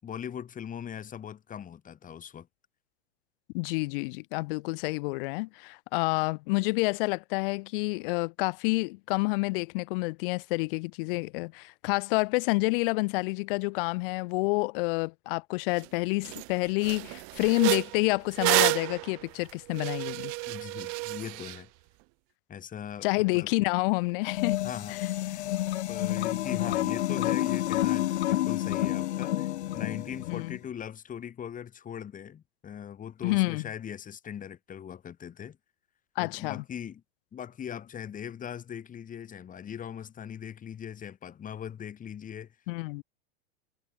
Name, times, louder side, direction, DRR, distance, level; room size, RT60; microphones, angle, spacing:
voice 1, 0.0-2.5 20.5-21.7 22.5-23.5 24.6-25.5 25.9-35.6 36.2-37.0 37.3-42.5, left 8 dB, 25° left, 5.3 m, -40 dB
voice 2, 3.5-20.3 23.0-24.6 30.3-30.6 33.2-33.6 36.2-36.6 42.7-43.0, left 26 dB, 55° left, 1.9 m, -28 dB
sound 1, 15.8-15.9 16.2-16.5 16.8-21.6, right 40 dB or more, 45° right, 0.9 m, -30 dB
sound 2, 24.2-30.5, left 14 dB, 80° left, 0.8 m, -29 dB
hypercardioid pair, 125°, 33 cm